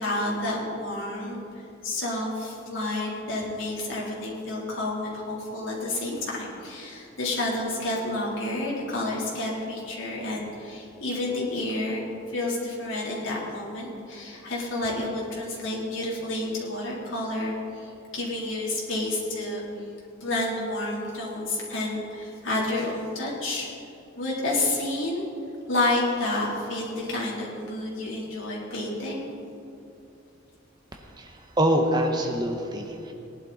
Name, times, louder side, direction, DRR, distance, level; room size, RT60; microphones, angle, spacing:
voice 1, 0.0-12.0 12.3-19.6 20.2-23.7 24.2-25.3 25.7-29.3, left 2 dB, 75° left, -5 dB, 3.7 m, -30 dB
voice 2, 30.9-33.1, right 1 dB, 20° right, 3 dB, 1.1 m, -25 dB
19.0 x 11.0 x 4.2 m, 2.6 s
head